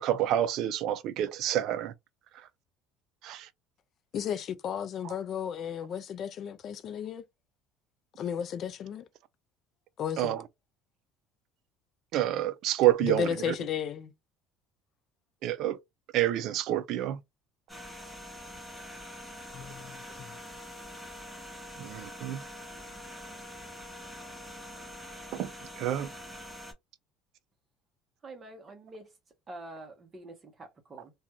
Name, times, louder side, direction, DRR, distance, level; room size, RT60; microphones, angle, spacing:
voice 1, 0.0-1.9 3.2-3.5 5.0-5.1 10.2-10.4 12.1-13.5 15.4-15.8 16.1-17.2 21.8-22.4 25.3-25.5 25.8-26.1, right 13 dB, 60° right, 0.4 m, -28 dB
voice 2, 4.1-7.2 8.2-9.0 10.0-10.4 13.0-14.1 19.5-20.3, left 8 dB, 45° left, 0.4 m, -34 dB
sound 1, 17.7-26.7, equal, ahead, 0.9 m, -45 dB
voice 3, 28.2-29.1 29.5-31.1, right 2 dB, 25° right, 0.9 m, -46 dB
2.5 x 2.3 x 2.8 m
cardioid pair, 120°, 0 cm